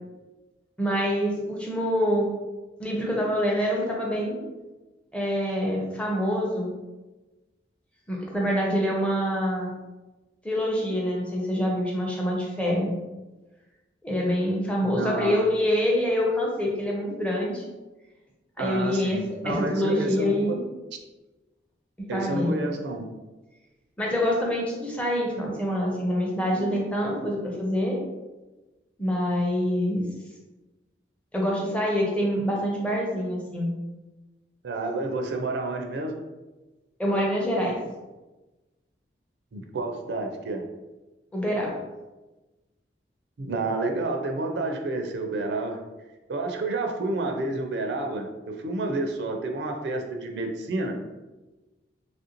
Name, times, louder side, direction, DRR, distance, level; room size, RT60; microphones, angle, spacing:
voice 1, 0.8-2.3 2.8-4.4 5.1-6.7 8.1-9.7 10.4-13.0 14.0-17.6 18.6-20.6 22.1-22.5 24.0-28.0 29.0-30.1 31.3-33.7 37.0-37.8 41.3-41.8, equal, 5° left, -2 dB, 0.5 m, -26 dB
voice 2, 14.8-15.4 18.6-20.6 22.1-23.0 34.6-36.1 39.5-40.6 43.4-45.8 46.3-51.0, right 2 dB, 70° right, 3 dB, 0.4 m, -30 dB
3.1 x 2.5 x 2.8 m, 1.1 s
head